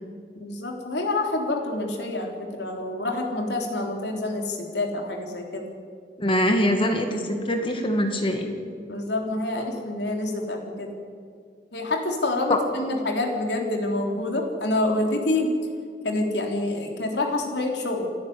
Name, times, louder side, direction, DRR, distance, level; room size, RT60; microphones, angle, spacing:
voice 1, 0.4-5.7 8.9-10.9 11.7-15.5 16.0-18.0, left 2 dB, 75° left, 2 dB, 3.6 m, -27 dB
voice 2, 6.2-8.5 12.5-12.6, left 1 dB, 30° left, 5 dB, 2.0 m, -23 dB
28.5 x 11.0 x 9.5 m, 2.2 s
head